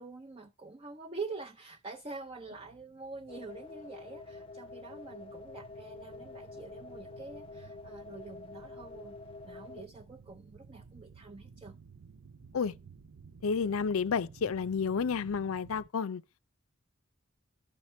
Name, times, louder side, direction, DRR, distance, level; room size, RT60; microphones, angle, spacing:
voice 1, 0.0-9.2 9.4-11.7, right 3 dB, 25° right, 0.6 m, -45 dB
sound 1, 2.0-15.9, right 5 dB, 80° right, 0.5 m, -55 dB
sound 2, 3.3-9.9, left 3 dB, 25° left, 0.4 m, -47 dB
voice 2, 13.4-16.2, left 5 dB, 85° left, 0.5 m, -31 dB
12.5 x 5.8 x 4.3 m
head